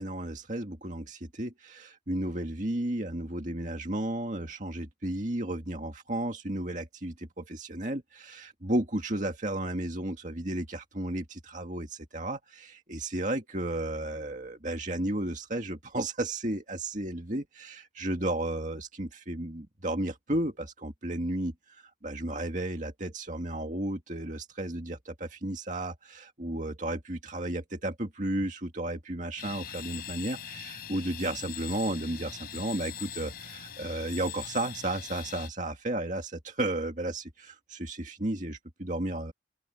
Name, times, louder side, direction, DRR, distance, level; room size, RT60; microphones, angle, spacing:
voice 1, 0.0-39.3, right 1 dB, 45° right, 2.0 m, -33 dB
sound 1, 29.4-35.5, left 10 dB, 55° left, 4.7 m, -42 dB
open air
head